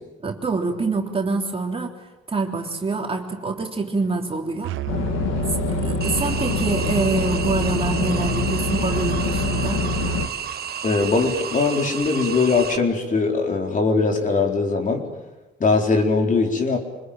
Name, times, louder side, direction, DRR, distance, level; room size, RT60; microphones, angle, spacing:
voice 1, 0.2-1.9 2.3-4.7 5.5-9.8, right 3 dB, 30° right, 2 dB, 3.3 m, -26 dB
Musical instrument, 4.6-10.3, right 18 dB, 85° right, 0.8 m, -29 dB
sound 1, 4.9-10.3, left 9 dB, 90° left, 1.7 m, -26 dB
sound 2, 6.0-12.8, right 8 dB, 50° right, 1.5 m, -32 dB
voice 2, 10.8-15.1 15.6-16.8, left 4 dB, 40° left, 2 dB, 4.4 m, -21 dB
26.0 x 20.5 x 9.0 m, 1.1 s
cardioid pair, 90°, 20 cm